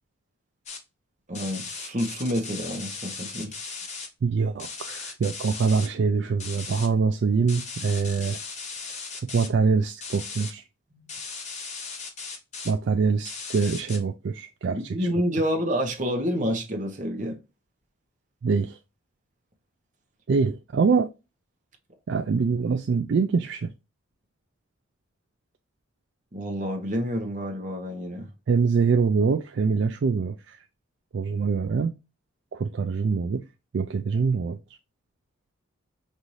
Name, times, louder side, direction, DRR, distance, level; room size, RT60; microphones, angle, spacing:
sound 1, 0.7-0.8 1.3-4.1 4.6-5.9 6.4-6.9 7.5-9.5 10.0-10.5 11.1-12.7 13.2-14.0, left 4 dB, 35° left, 0.8 m, -37 dB
voice 1, 1.3-3.8 10.9-11.2 14.6-17.4 26.3-28.3, equal, 35° right, 0.9 m, -29 dB
voice 2, 4.2-8.4 9.3-10.6 12.6-15.1 18.4-18.8 20.3-21.1 22.1-23.7 28.5-30.6 31.1-31.9 32.5-33.4 33.7-34.6, right 5 dB, 55° right, 0.3 m, -24 dB
5.3 x 2.6 x 3.0 m
head